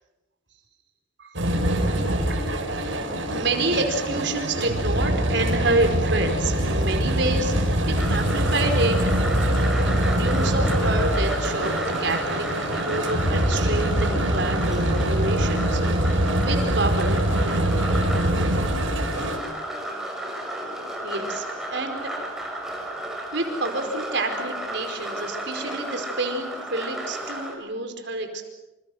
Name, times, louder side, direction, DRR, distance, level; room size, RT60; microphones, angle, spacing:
sound 1, 1.4-19.4, right 1 dB, 75° right, 6.2 m, -23 dB
voice 1, 2.7-3.0 3.3-9.0 10.1-15.8 16.4-17.7 21.0-22.1 23.3-28.4, right 2 dB, 60° right, 5 dB, 4.9 m, -28 dB
sound 2, 8.0-27.6, right 1 dB, ahead, 6.6 m, -33 dB
28.5 x 28.5 x 6.4 m, 1.0 s
head